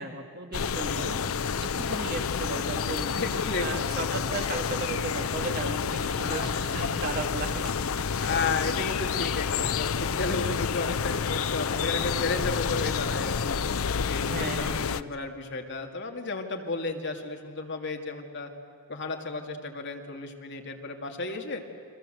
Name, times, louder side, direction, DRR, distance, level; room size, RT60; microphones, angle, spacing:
voice 1, 0.0-1.3 1.8-3.1 3.6-7.9 8.1-8.6 14.2-15.3, right 3 dB, 45° right, 4 dB, 2.4 m, -36 dB
sound 1, 0.5-15.0, left 6 dB, 70° left, 0.6 m, -29 dB
voice 2, 0.8-1.3 3.2-4.2 6.2-6.8 8.1-13.6 14.1-18.5 18.9-21.6, left 3 dB, 50° left, 3 dB, 2.3 m, -33 dB
30.0 x 23.0 x 7.8 m, 2.3 s
head